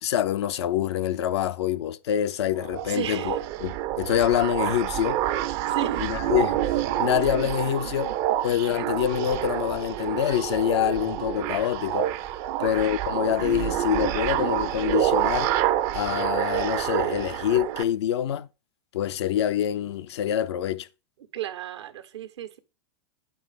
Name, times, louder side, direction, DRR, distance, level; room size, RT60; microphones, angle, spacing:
voice 1, 0.0-5.2 6.0-6.6 7.0-8.1 8.4-12.1 12.6-15.5 15.9-18.5 18.9-20.9, left 10 dB, 75° left, 0.7 m, -26 dB
sound 1, 2.6-17.8, right 13 dB, 55° right, 0.8 m, -28 dB
voice 2, 2.9-3.4 5.5-6.0 12.5-12.8 21.3-22.6, right 10 dB, 80° right, 1.5 m, -34 dB
9.0 x 6.2 x 5.1 m
hypercardioid pair, 105°, 14 cm